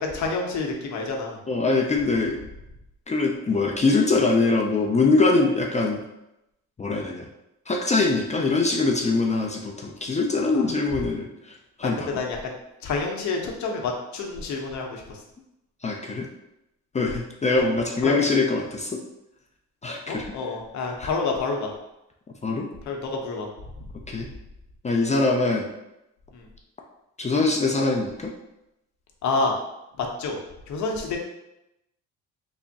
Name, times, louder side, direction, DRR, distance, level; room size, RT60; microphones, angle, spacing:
voice 1, 0.0-1.4 10.5-10.6 11.8-12.5 12.8-15.0 18.0-18.1 20.1-21.7 22.9-23.5 23.8-23.9 26.3-26.5 29.2-29.5 30.0-30.4 30.7-31.2, left 3 dB, 65° left, 1 dB, 0.8 m, -28 dB
voice 2, 1.5-2.4 3.1-6.0 6.8-7.3 7.7-12.2 15.8-16.3 16.9-19.0 19.8-20.3 21.0-21.1 22.4-22.7 24.1-24.3 24.8-25.7 27.2-28.3, left 3 dB, 25° left, 0 dB, 0.4 m, -23 dB
3.4 x 2.0 x 3.9 m, 0.89 s
cardioid pair, 90°, 30 cm